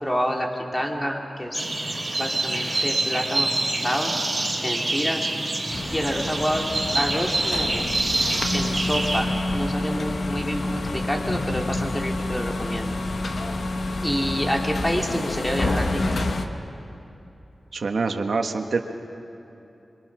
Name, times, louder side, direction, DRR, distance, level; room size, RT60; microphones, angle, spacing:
voice 1, 0.0-1.7 2.2-4.1 4.6-5.3 5.9-7.9 8.5-12.9 14.0-16.0, equal, 10° left, 1 dB, 2.7 m, -28 dB
sound 1, 1.5-9.2, right 2 dB, 25° right, 4.3 m, -26 dB
sound 2, 5.7-16.5, left 2 dB, 65° left, 1.3 m, -28 dB
voice 2, 17.7-18.8, right 4 dB, 70° right, 5 dB, 1.5 m, -25 dB
27.0 x 23.5 x 6.1 m, 3.0 s
wide cardioid pair, 105°, 0 cm